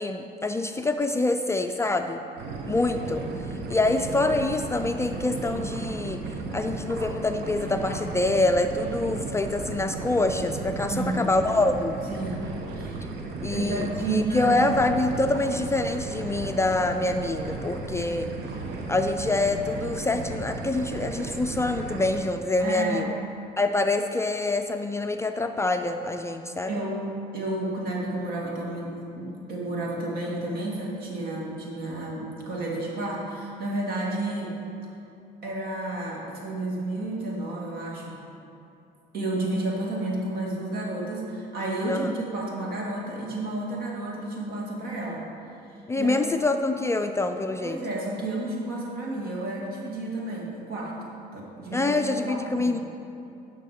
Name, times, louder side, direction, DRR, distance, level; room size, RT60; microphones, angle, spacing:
voice 1, 0.0-2.2 2.7-3.2 3.7-12.0 13.4-18.3 18.9-23.1 23.6-26.7 41.9-42.1 45.9-47.8 51.7-52.8, left 2 dB, 15° left, 6 dB, 0.4 m, -26 dB
sound 1, 2.4-22.2, right 3 dB, 80° right, 1.0 m, -35 dB
voice 2, 10.9-11.3 12.1-13.0 13.5-14.6 22.6-23.1 26.7-34.6 35.4-38.2 39.1-45.3 46.0-46.2 47.6-51.0 51.3-52.0 52.2-52.8, right 2 dB, 65° right, -3 dB, 2.1 m, -31 dB
9.5 x 6.4 x 5.0 m, 2.7 s
cardioid pair, 110°, 17 cm